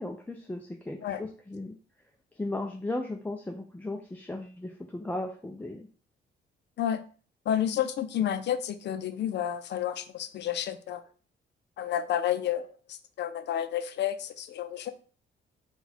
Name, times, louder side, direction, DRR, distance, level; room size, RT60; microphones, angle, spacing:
voice 1, 0.0-1.7 2.4-5.9, left 2 dB, 10° left, 0.4 m, -36 dB
voice 2, 7.5-11.0 11.8-14.9, left 10 dB, 60° left, 0.5 m, -30 dB
3.9 x 2.3 x 4.3 m
cardioid pair, 90°, 20 cm